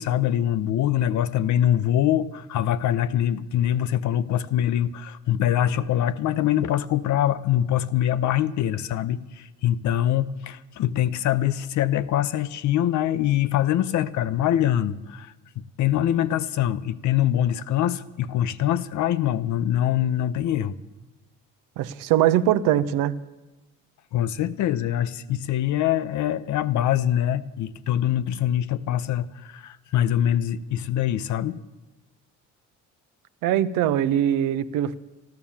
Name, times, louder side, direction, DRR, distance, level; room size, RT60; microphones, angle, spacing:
voice 1, 0.0-20.7 24.1-31.6, left 11 dB, 65° left, 0.7 m, -24 dB
voice 2, 21.8-23.2 33.4-34.9, right 11 dB, 85° right, 0.7 m, -22 dB
13.0 x 12.5 x 7.2 m
supercardioid pair, 80°, 31 cm